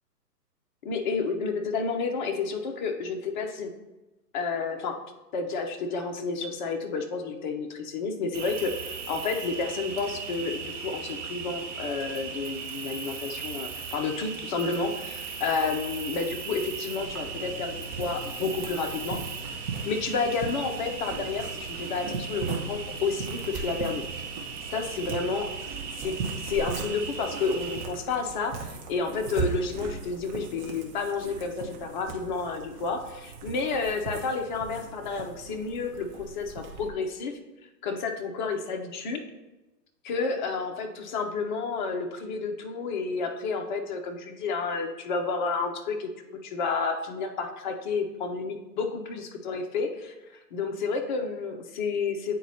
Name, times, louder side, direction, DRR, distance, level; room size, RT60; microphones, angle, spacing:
voice 1, 0.8-3.7 4.3-5.0 5.3-19.2 19.8-24.0 24.7-25.5 26.0-26.2 26.4-37.3 37.8-39.2 40.0-46.1 46.4-52.3, left 4 dB, 30° left, 4 dB, 0.6 m, -30 dB
Cricket, 8.3-27.8, right 5 dB, 50° right, 1.3 m, -38 dB
sound 1, 17.0-36.9, right 4 dB, 30° right, 0.9 m, -39 dB
9.1 x 4.1 x 2.8 m, 1.1 s
hypercardioid pair, 135°, 49 cm